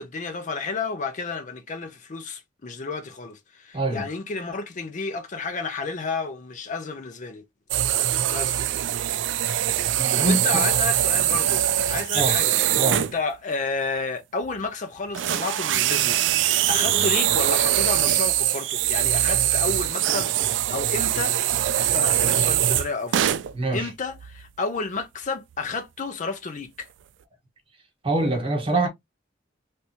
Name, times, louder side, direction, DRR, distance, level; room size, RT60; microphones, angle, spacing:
voice 1, 0.0-7.4 8.3-8.7 10.2-21.4 21.8-23.3 23.7-26.9, left 3 dB, 45° left, 0.5 m, -31 dB
voice 2, 3.7-4.1 10.0-10.6 12.1-12.4 12.8-13.1 23.5-23.9 28.0-28.9, right 2 dB, 30° right, 1.2 m, -24 dB
sound 1, 7.7-13.1 14.5-14.6 15.1-23.5 24.1-24.5 25.0-25.1 25.5-25.6, right 12 dB, 80° right, 0.3 m, -22 dB
3.4 x 2.7 x 2.7 m
head